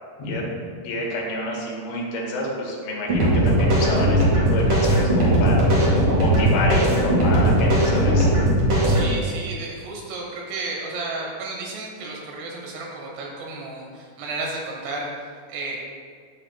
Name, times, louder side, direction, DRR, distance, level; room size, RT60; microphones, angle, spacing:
voice 1, 0.2-0.6 0.8-8.3, left 1 dB, 90° left, -3 dB, 3.7 m, -28 dB
sound 1, 3.1-9.1, right 1 dB, 55° right, 1.8 m, -18 dB
voice 2, 8.9-15.8, right 3 dB, 75° right, -1 dB, 2.9 m, -33 dB
11.5 x 6.4 x 2.2 m, 2.1 s
omnidirectional pair, 4.9 m